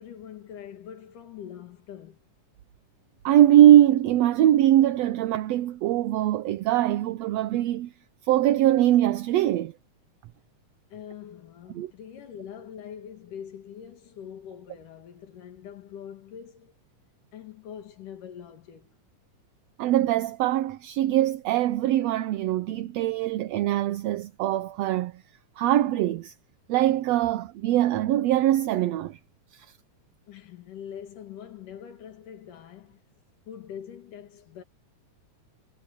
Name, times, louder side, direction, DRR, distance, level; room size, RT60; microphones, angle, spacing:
voice 1, 0.0-2.2 10.9-16.7 17.3-19.0 30.3-33.0 33.5-34.6, left 9 dB, 85° left, 3.7 m, -43 dB
voice 2, 3.2-7.9 8.2-9.7 11.7-11.9 19.8-25.2 25.6-26.3 26.7-29.2 29.5-29.7, right 13 dB, 70° right, 1.7 m, -22 dB
omnidirectional pair, 3.6 m